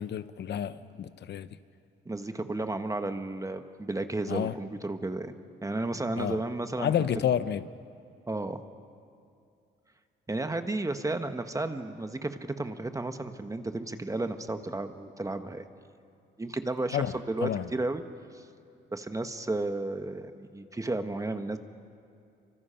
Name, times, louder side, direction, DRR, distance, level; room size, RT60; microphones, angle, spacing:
voice 1, 0.0-1.5 4.3-4.5 6.2-6.4 6.8-7.6 16.9-17.1 17.4-17.7, left 9 dB, 60° left, 0.9 m, -29 dB
voice 2, 2.0-7.1 8.3-8.6 10.3-15.7 16.4-18.0 18.3-18.5 18.9-21.6, right 2 dB, 15° right, 1.3 m, -33 dB
28.0 x 24.5 x 5.8 m
cardioid pair, 90°, 20 cm